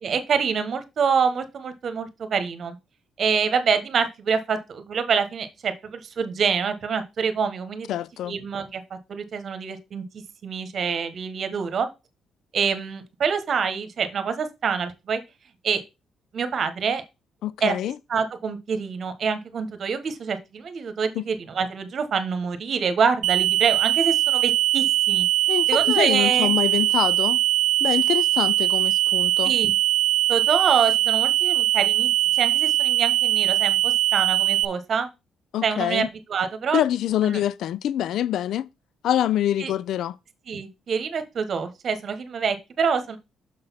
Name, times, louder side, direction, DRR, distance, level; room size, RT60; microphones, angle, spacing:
voice 1, 0.0-2.7 3.2-7.9 8.2-10.0 10.4-11.9 12.5-15.2 15.6-15.8 16.3-17.0 17.6-17.8 18.1-25.3 25.7-26.5 29.4-29.7 30.3-35.1 35.6-36.8 37.2-37.4 39.6-39.7 40.5-43.2, right 6 dB, 55° right, 1.2 m, -26 dB
voice 2, 7.9-8.3 17.4-17.9 21.2-21.3 25.5-27.4 27.8-29.5 35.5-36.1 36.7-38.7 39.0-40.1, left 11 dB, 75° left, 0.3 m, -25 dB
sound 1, 23.2-34.6, right 14 dB, 85° right, 0.5 m, -21 dB
6.5 x 4.0 x 5.7 m
cardioid pair, 90°, 0 cm